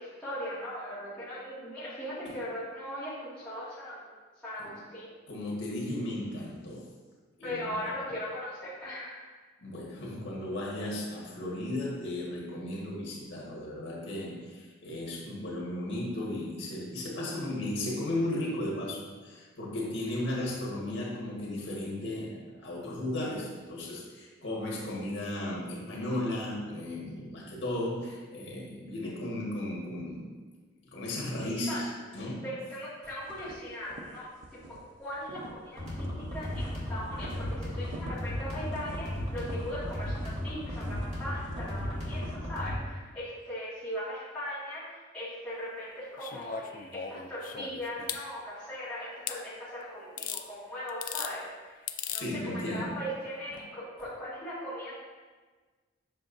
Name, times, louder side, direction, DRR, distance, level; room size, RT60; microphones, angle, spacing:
voice 1, 0.0-4.0 4.4-5.1 7.4-9.3 31.7-31.8 32.4-34.3 35.0-55.1, equal, 5° left, -13 dB, 1.8 m, -39 dB
voice 2, 5.3-6.9 7.4-7.9 9.6-30.3 30.9-31.9 32.1-32.5 52.2-53.0, left 1 dB, 75° left, -4 dB, 1.6 m, -35 dB
sound 1, 33.3-34.8 35.1-36.9 37.1-42.4, right 1 dB, 80° right, 0.8 m, -46 dB
sound 2, 35.8-42.8, left 1 dB, 35° right, 2.0 m, -35 dB
sound 3, 46.2-48.2 49.3-49.4 50.2-50.4 50.9-51.3 51.9-52.3 53.5-53.6, left 8 dB, 45° left, 0.3 m, -37 dB
7.5 x 6.0 x 2.6 m, 1.4 s
head